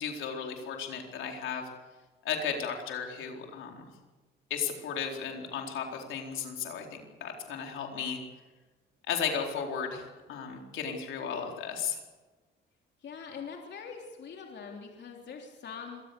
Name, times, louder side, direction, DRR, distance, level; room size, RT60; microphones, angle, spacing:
voice 1, 0.0-1.7 2.2-3.9 4.5-8.2 9.1-12.0, left 7 dB, 80° left, 2 dB, 4.1 m, -35 dB
voice 2, 13.0-16.0, left 6 dB, 60° left, 1 dB, 3.4 m, -43 dB
26.0 x 18.5 x 6.9 m, 1.3 s
cardioid pair, 90°, 20 cm